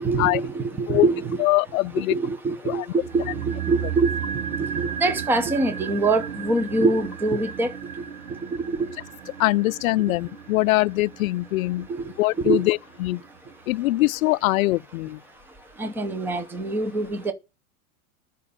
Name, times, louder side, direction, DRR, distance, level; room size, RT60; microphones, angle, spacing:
voice 1, 0.0-1.4 2.0-4.1 4.6-7.7 11.9-12.0 12.4-12.6 15.8-17.3, right 3 dB, 5° right, 0.7 m, -24 dB
voice 2, 1.4-2.2 2.6-2.8 9.4-11.9 12.2-13.2 13.7-15.2, left 19 dB, 65° left, 0.5 m, -22 dB
sound 1, 3.0-13.3 13.5-13.6, right 8 dB, 80° right, 1.3 m, -34 dB
11.0 x 5.4 x 8.5 m
supercardioid pair, 165°, 45 cm